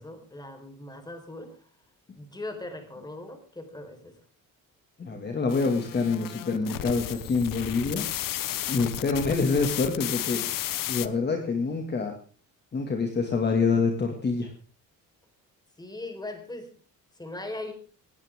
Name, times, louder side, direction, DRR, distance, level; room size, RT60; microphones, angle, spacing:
voice 1, 0.0-1.5 2.2-4.1 15.8-16.7 17.2-17.7, left 2 dB, 10° left, 5 dB, 4.5 m, -39 dB
voice 2, 5.0-8.1 8.7-10.4 10.9-12.1 12.7-14.5, left 4 dB, 30° left, 3 dB, 2.3 m, -26 dB
sound 1, 5.5-11.1, left 13 dB, 75° left, 1.1 m, -33 dB
19.0 x 17.5 x 3.7 m, 0.40 s
cardioid pair, 150°, 34 cm